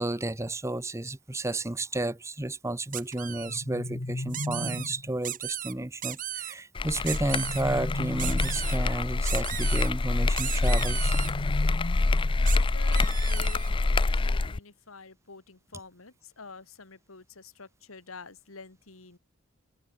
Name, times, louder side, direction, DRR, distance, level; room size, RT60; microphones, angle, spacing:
voice 1, 0.0-11.1, right 1 dB, 15° right, 0.9 m, -32 dB
sound 1, 2.9-3.6 4.3-4.9 5.2-5.7 6.0-6.5 7.0-7.6 8.2-8.8 9.3-9.9 10.4-11.3 12.5-12.6 12.9-13.7, right 12 dB, 40° right, 1.0 m, -36 dB
sound 2, 3.3-5.1 6.9-8.8 10.6-12.6, left 1 dB, 50° left, 1.3 m, -37 dB
sound 3, 6.8-14.6, left 3 dB, 25° left, 0.4 m, -26 dB
voice 2, 12.3-19.2, left 4 dB, 80° left, 1.9 m, -48 dB
open air
head